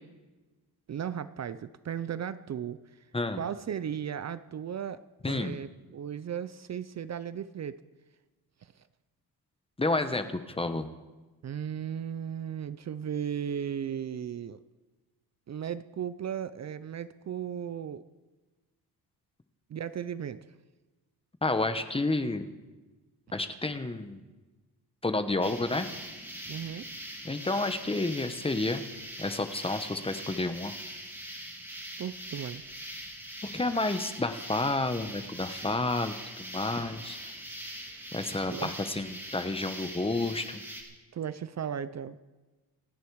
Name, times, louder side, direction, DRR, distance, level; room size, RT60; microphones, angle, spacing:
voice 1, 0.9-2.8 3.3-5.7 5.9-7.8 8.6-8.7 11.4-14.6 15.5-18.0 19.7-20.4 26.5-26.9 32.0-32.6 38.5-38.7 41.1-42.2, right 8 dB, 45° right, 14 dB, 0.6 m, -36 dB
voice 2, 5.2-5.6 9.8-10.9 21.4-22.5 23.3-24.2 25.0-25.9 27.2-28.8 29.2-30.7 33.5-37.2 38.1-40.6, left 2 dB, 15° left, 9 dB, 1.0 m, -30 dB
sound 1, 25.4-40.8, right 1 dB, 5° right, 3.2 m, -42 dB
28.0 x 10.5 x 4.8 m, 1.2 s
cardioid pair, 130°, 37 cm